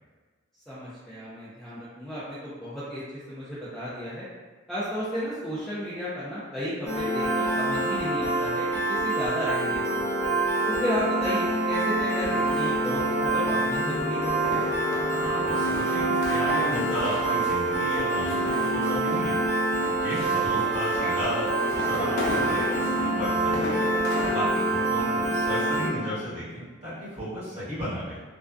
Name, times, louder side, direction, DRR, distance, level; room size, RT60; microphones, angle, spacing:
voice 1, 0.7-3.0 3.3-4.3 4.7-10.0 10.6-14.3 20.6-20.8, equal, ahead, -13 dB, 0.4 m, -33 dB
Piano, 6.9-25.9, right 2 dB, 40° left, 0.7 m, -26 dB
sound 1, 12.2-24.4, left 2 dB, 75° left, 0.5 m, -36 dB
voice 2, 15.2-19.4 19.9-23.8 24.1-28.2, equal, 30° right, -11 dB, 1.3 m, -34 dB
2.5 x 2.3 x 2.2 m, 1.3 s
head